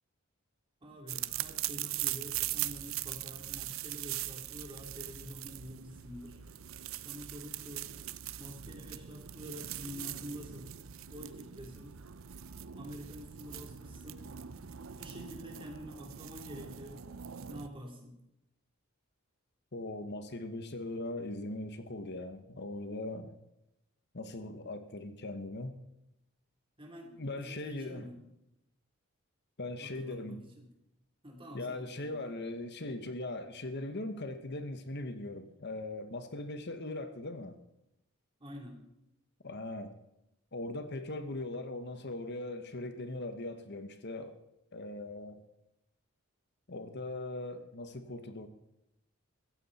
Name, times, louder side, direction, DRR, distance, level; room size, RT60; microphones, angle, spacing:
voice 1, 0.8-6.4 7.0-7.9 8.4-10.7 11.1-12.0 12.6-14.3 15.0-17.0 17.5-18.1 26.8-28.2 29.8-30.6 31.2-32.4 38.4-38.8, equal, 25° right, 3.5 m, -47 dB
sound 1, 1.1-17.7, right 12 dB, 70° right, 0.6 m, -41 dB
voice 2, 19.7-23.4 24.1-25.7 27.2-28.1 29.6-30.4 31.5-37.6 39.4-39.9 40.5-44.4 44.7-45.4 46.7-48.5, left 2 dB, 55° left, 1.2 m, -40 dB
15.5 x 14.5 x 4.3 m
head